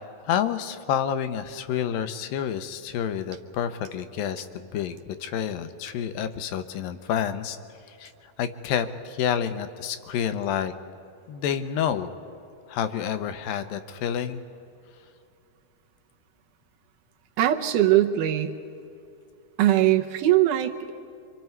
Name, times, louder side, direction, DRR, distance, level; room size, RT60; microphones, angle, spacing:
voice 1, 0.3-7.6 8.0-8.1 8.4-10.7 11.3-12.1 12.7-14.4, left 8 dB, 85° left, 9 dB, 2.6 m, -29 dB
voice 2, 17.4-18.5 19.6-20.9, right 13 dB, 70° right, 4 dB, 2.3 m, -21 dB
28.5 x 25.0 x 4.6 m, 2.6 s
omnidirectional pair, 4.1 m